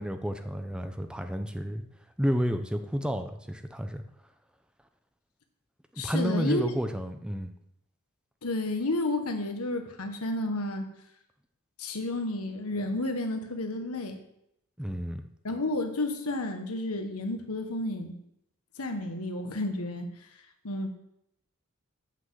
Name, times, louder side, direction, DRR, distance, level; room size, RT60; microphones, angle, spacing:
voice 1, 0.0-1.8 2.2-4.0 5.9-7.5 14.8-15.2, equal, 5° right, 7 dB, 0.5 m, -31 dB
voice 2, 6.0-6.7 8.4-10.9 11.8-14.2 15.4-18.2 18.8-20.1 20.6-20.9, left 2 dB, 80° left, 6 dB, 1.4 m, -31 dB
8.2 x 5.9 x 7.7 m, 0.78 s
head